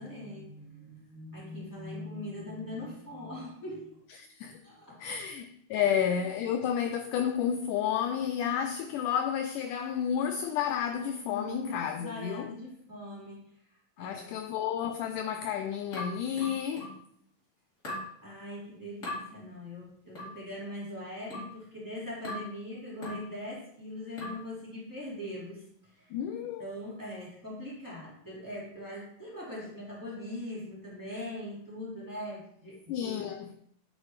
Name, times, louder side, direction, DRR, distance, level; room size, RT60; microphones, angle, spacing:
voice 1, 0.0-3.9 4.6-5.1 5.8-6.1 11.2-14.4 18.2-26.1 26.6-33.4, left 1 dB, 5° right, 2.7 m, -41 dB
voice 2, 4.2-4.6 5.0-12.5 14.0-16.9 26.1-26.6 32.9-33.6, left 8 dB, 85° left, 1.8 m, -31 dB
sound 1, 15.9-17.0 17.8-18.1 19.0-19.2 20.1-20.4 21.3-21.6 22.2-22.5 23.0-23.3 24.2-24.5, left 1 dB, 25° left, 2.3 m, -39 dB
9.4 x 6.2 x 3.2 m
omnidirectional pair, 4.1 m